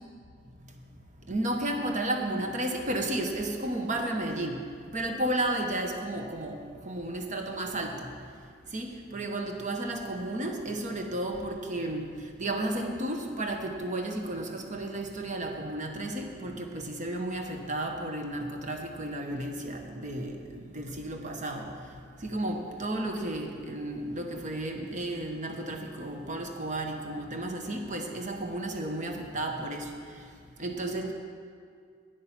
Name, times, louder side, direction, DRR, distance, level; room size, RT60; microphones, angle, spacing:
voice 1, 1.3-4.6 4.9-8.1 8.7-30.3 30.6-31.1, right 1 dB, 40° right, 3 dB, 1.0 m, -33 dB
9.0 x 8.6 x 5.9 m, 2.2 s
head